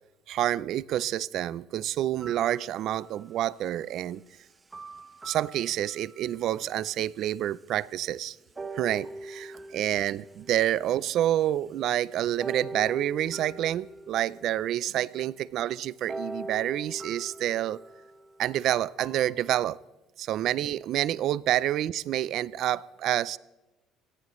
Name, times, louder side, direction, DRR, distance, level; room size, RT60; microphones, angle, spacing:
voice 1, 0.3-4.2 5.2-8.4 8.7-17.8 18.4-19.8 20.2-23.4, right 12 dB, 45° right, 0.4 m, -28 dB
sound 1, 2.2-3.3 4.7-6.4 7.1-7.2 8.6-11.5 12.4-15.0 16.1-19.5, right 2 dB, 15° right, 0.9 m, -42 dB
24.5 x 18.5 x 3.1 m
cardioid pair, 170°, 0 cm